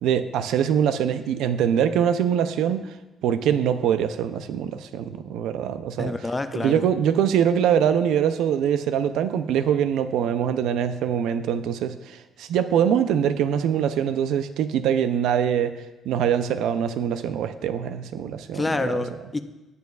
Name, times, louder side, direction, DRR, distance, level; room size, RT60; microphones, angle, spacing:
voice 1, 0.0-3.0 3.2-6.1 6.5-19.0, right 8 dB, 90° right, 11 dB, 0.5 m, -23 dB
voice 2, 6.0-6.8 18.5-19.4, left 2 dB, 15° left, 10 dB, 0.4 m, -27 dB
18.5 x 6.8 x 2.4 m, 1.1 s
cardioid pair, 180°, 0 cm